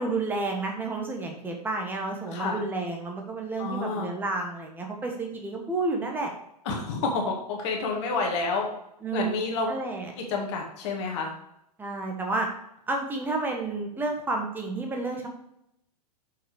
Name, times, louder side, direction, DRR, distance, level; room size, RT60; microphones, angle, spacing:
voice 1, 0.0-6.3 9.0-9.3 9.7-10.1 11.8-12.5 12.9-15.3, right 3 dB, 10° right, 2 dB, 1.5 m, -30 dB
voice 2, 3.6-4.1 6.7-8.7 9.1-9.7 10.2-11.3, left 3 dB, 45° left, 1 dB, 2.1 m, -29 dB
7.2 x 5.8 x 4.9 m, 0.77 s
figure-of-eight pair, 105°, 21 cm